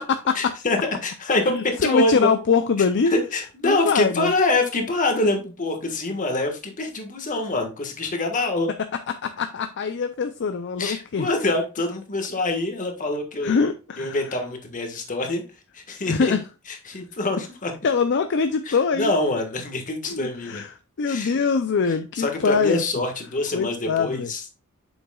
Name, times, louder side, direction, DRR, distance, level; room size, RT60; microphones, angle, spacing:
voice 1, 0.3-2.3 2.8-2.9 3.1-8.7 10.8-13.5 14.0-15.4 15.7-16.3 16.7-17.7 18.7-20.6 21.1-21.4 22.2-24.5, left 2 dB, 35° left, 1.5 m, -25 dB
voice 2, 1.5-3.1 3.6-4.3 9.2-11.3 13.4-14.2 16.1-16.4 17.8-19.1 20.1-23.0 23.5-24.3, left 5 dB, 55° left, 0.5 m, -23 dB
7.8 x 6.4 x 2.3 m
head